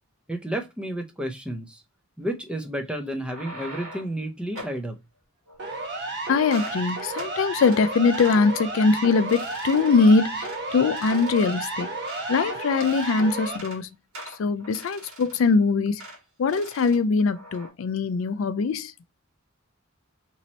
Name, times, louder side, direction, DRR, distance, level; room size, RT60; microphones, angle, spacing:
voice 1, 0.3-1.8 2.2-5.0, right 1 dB, 5° right, 0.5 m, -31 dB
sound 1, 3.1-4.2 4.5-4.8 5.5-6.1 6.4-6.8 7.1-7.3 7.7-7.8 8.1-8.4 8.8-9.0 9.3-10.0 10.4-10.6 11.0-12.4 12.7-13.2 13.5-13.8 14.1-15.5 16.0-16.2 16.5-17.0 17.3-17.7, right 1 dB, 85° right, 1.7 m, -43 dB
Siren, 5.6-13.6, right 2 dB, 55° right, 1.0 m, -32 dB
voice 2, 6.3-11.9 12.3-13.9 14.4-16.0 16.4-18.9, left 4 dB, 70° left, 0.4 m, -22 dB
3.0 x 2.8 x 4.0 m
head